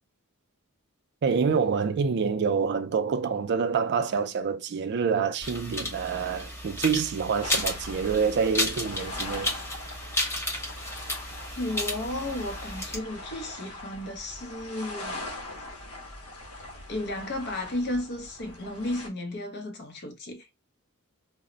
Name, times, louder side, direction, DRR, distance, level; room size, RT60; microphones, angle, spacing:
voice 1, 1.2-9.5, right 6 dB, 50° right, 0.4 m, -27 dB
sound 1, 5.4-13.0, left 1 dB, 10° left, 0.7 m, -33 dB
sound 2, 7.4-19.1, left 2 dB, 85° left, 0.8 m, -41 dB
voice 2, 11.6-15.2 16.9-20.5, left 1 dB, 50° left, 0.6 m, -33 dB
2.1 x 2.0 x 3.7 m
head